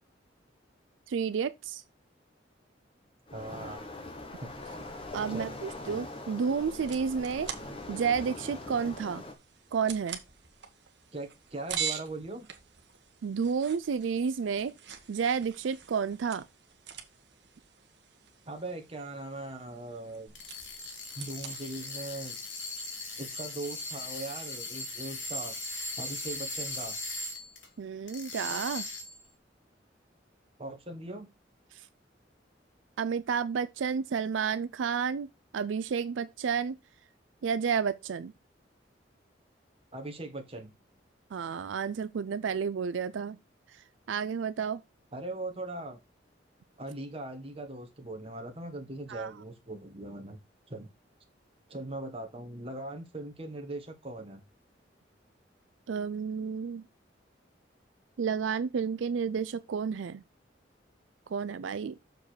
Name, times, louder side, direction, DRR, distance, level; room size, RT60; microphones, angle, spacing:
voice 1, 1.1-1.8 5.1-7.5 7.9-9.2 9.7-10.2 13.2-14.7 15.1-16.5 27.8-28.9 31.7-31.8 33.0-35.3 35.5-36.8 37.4-38.3 41.3-43.4 43.7-44.8 49.1-49.3 55.9-56.8 58.2-60.2 61.3-62.0, right 6 dB, 85° right, 0.4 m, -31 dB
Waves surf, 3.3-9.3, left 2 dB, 30° left, 1.3 m, -42 dB
voice 2, 3.3-3.8 4.4-4.5 5.3-5.6 11.1-12.4 18.4-20.3 21.2-22.4 23.2-25.5 26.0-27.0 30.6-31.3 39.9-40.7 45.1-46.0 46.8-50.4 50.7-50.9 51.7-54.4, right 2 dB, 30° right, 1.7 m, -40 dB
sound 1, 4.6-22.6, right 8 dB, 65° right, 1.3 m, -45 dB
sound 2, 20.3-27.7 28.1-29.3, left 2 dB, 85° left, 2.3 m, -39 dB
6.7 x 5.1 x 4.7 m
head